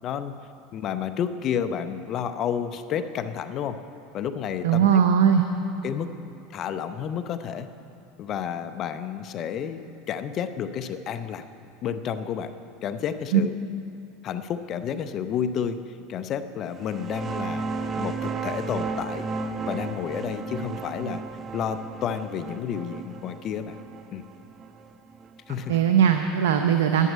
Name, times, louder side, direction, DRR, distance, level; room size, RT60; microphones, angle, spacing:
voice 1, 0.0-0.3 0.7-3.8 4.1-5.0 5.8-6.1 6.5-7.7 8.2-11.4 11.8-12.5 12.8-13.6 14.2-17.7 18.0-19.3 19.7-21.2 21.5-23.8 24.1-24.3 25.5-25.8, left 8 dB, 45° left, 10 dB, 0.7 m, -30 dB
voice 2, 4.6-5.4 13.3-13.5 25.7-27.1, right 8 dB, 80° right, 6 dB, 0.6 m, -19 dB
sound 1, 16.8-26.1, right 4 dB, 30° right, 0.7 m, -34 dB
11.0 x 7.3 x 9.4 m, 2.8 s
hypercardioid pair, 95°, 0 cm